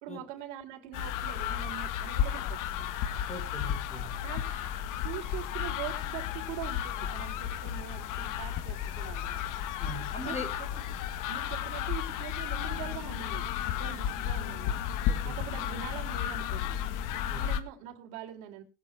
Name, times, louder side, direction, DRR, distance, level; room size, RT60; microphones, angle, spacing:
voice 1, 0.0-2.9 4.2-4.4 5.0-9.5 10.2-10.8 11.3-13.5 13.7-14.8 15.2-16.8 17.4-18.6, right 11 dB, 70° right, 1 dB, 3.9 m, -43 dB
sound 1, 0.9-17.6, left 10 dB, 60° left, 1.4 m, -33 dB
voice 2, 3.3-4.1 9.8-10.5 15.1-15.4 17.3-17.4, left 1 dB, 20° left, 4 dB, 4.7 m, -40 dB
21.5 x 8.3 x 3.5 m, 0.30 s
supercardioid pair, 115°, 36 cm